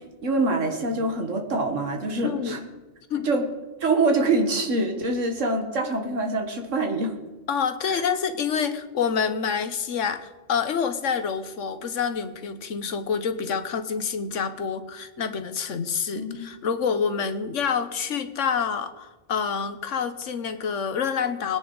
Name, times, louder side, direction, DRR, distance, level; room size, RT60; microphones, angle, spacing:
voice 1, 0.0-2.6 3.2-3.4 3.8-7.1 7.9-8.0 16.1-16.5, right 2 dB, 85° right, 3 dB, 1.9 m, -25 dB
voice 2, 2.2-2.6 3.1-3.3 7.5-21.6, left 6 dB, 75° left, 10 dB, 1.4 m, -27 dB
20.5 x 10.0 x 4.0 m, 1.2 s
omnidirectional pair, 1.3 m